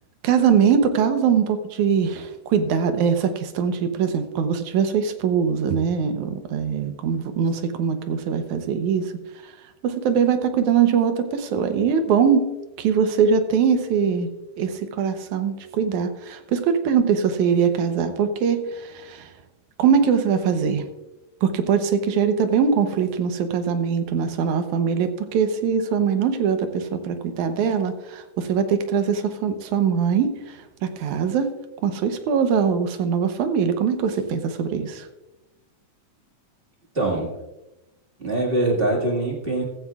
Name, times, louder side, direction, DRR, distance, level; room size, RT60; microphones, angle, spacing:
voice 1, 0.2-9.1 9.8-12.5 12.8-14.3 14.6-19.3 19.8-20.9 21.4-31.5 31.8-35.1, right 7 dB, 75° right, 8 dB, 2.3 m, -22 dB
voice 2, 36.9-37.3 38.2-39.6, right 2 dB, 25° right, -2 dB, 1.5 m, -23 dB
15.5 x 14.0 x 2.4 m, 1.0 s
omnidirectional pair, 3.5 m